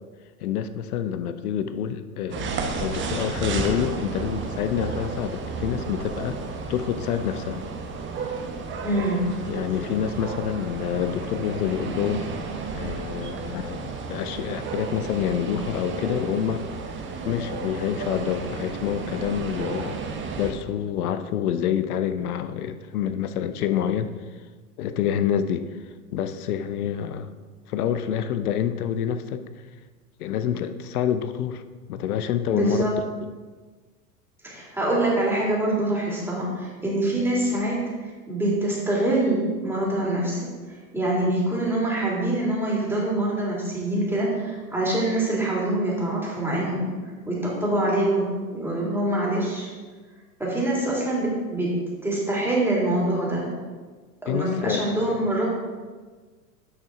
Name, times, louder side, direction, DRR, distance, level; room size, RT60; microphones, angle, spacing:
voice 1, 0.4-6.4 6.7-7.7 9.1-9.2 9.4-12.3 12.7-16.6 17.2-20.0 20.4-24.1 24.8-25.7 26.1-27.3 27.7-29.4 30.2-31.6 31.9-32.8 54.3-54.8 55.2-55.4, left 9 dB, 70° left, 11 dB, 0.7 m, -27 dB
sound 1, 2.3-20.5, right 4 dB, 25° right, 1.0 m, -32 dB
voice 2, 8.8-9.3 32.5-32.9 34.4-37.8 38.3-40.5 40.9-46.9 47.2-49.7 50.4-51.8 52.0-53.5 54.2-55.4, right 1 dB, 5° right, -5 dB, 2.7 m, -25 dB
9.1 x 6.1 x 3.7 m, 1.4 s
hypercardioid pair, 95°, 46 cm